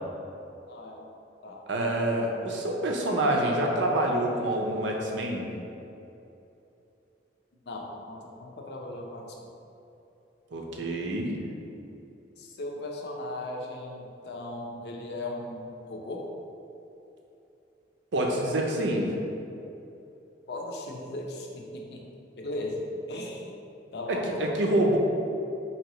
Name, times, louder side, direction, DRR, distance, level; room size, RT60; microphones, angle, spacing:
voice 1, 0.7-1.1 1.4-1.6 7.5-9.5 12.4-16.2 20.5-22.0 22.4-23.5 23.9-24.6, left 1 dB, 65° left, 0 dB, 0.5 m, -37 dB
voice 2, 1.7-5.5 10.5-11.4 18.1-19.1 24.1-25.0, right 1 dB, 85° right, 0 dB, 0.6 m, -27 dB
4.5 x 2.8 x 3.0 m, 2.9 s
head